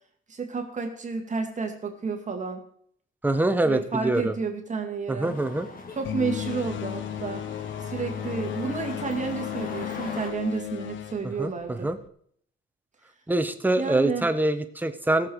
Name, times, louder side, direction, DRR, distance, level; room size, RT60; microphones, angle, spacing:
voice 1, 0.3-2.6 3.6-5.3 6.0-7.5 7.8-11.9 13.8-14.3, right 5 dB, 40° right, 4 dB, 2.3 m, -31 dB
voice 2, 3.2-4.3 5.1-5.7 11.4-11.5 11.8-12.0 13.3-15.3, right 2 dB, 10° right, 9 dB, 1.2 m, -24 dB
sound 1, 5.2-10.3, left 3 dB, 45° left, 2.7 m, -41 dB
sound 2, 6.0-12.1, left 11 dB, 75° left, 0.7 m, -34 dB
17.0 x 7.2 x 4.8 m, 0.63 s
cardioid pair, 90°, 20 cm